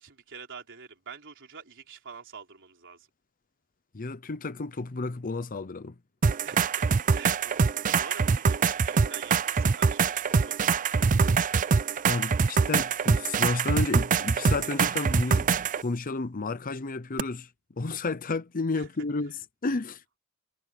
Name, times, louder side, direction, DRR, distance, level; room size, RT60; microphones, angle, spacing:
voice 1, 0.0-3.1 6.4-6.9 7.1-11.2 18.7-18.9, right 6 dB, 60° right, 3.9 m, -46 dB
voice 2, 3.9-5.9 12.1-15.5 15.8-17.5 17.8-19.3 19.6-20.0, left 3 dB, 40° left, 0.7 m, -31 dB
sound 1, 6.2-15.8 17.2-17.3, right 5 dB, 40° right, 0.5 m, -24 dB
head